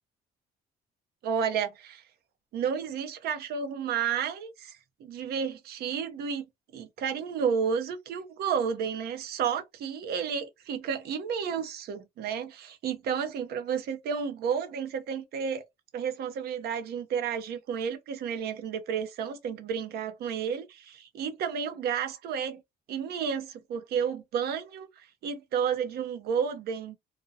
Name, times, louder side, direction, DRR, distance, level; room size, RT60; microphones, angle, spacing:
voice 1, 1.2-2.0 2.5-6.4 6.7-15.6 15.9-22.6 22.9-27.0, right 7 dB, 70° right, 0.7 m, -31 dB
2.4 x 2.2 x 2.6 m
cardioid pair, 110°, 17 cm